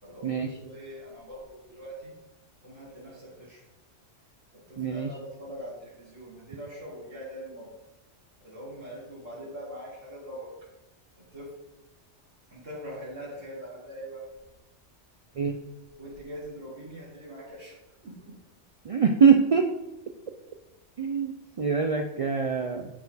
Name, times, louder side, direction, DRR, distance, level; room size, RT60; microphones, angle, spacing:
voice 1, 0.0-2.1 2.6-3.6 4.5-7.7 8.4-10.5 11.2-11.5 12.5-14.2 16.0-17.8 18.0-18.4, equal, 80° right, -9 dB, 3.6 m, -42 dB
voice 2, 4.8-5.1 15.4-15.6 18.8-19.7 21.0-22.9, right 6 dB, 65° right, 5 dB, 0.3 m, -23 dB
12.0 x 4.5 x 4.1 m, 0.97 s
omnidirectional pair, 1.2 m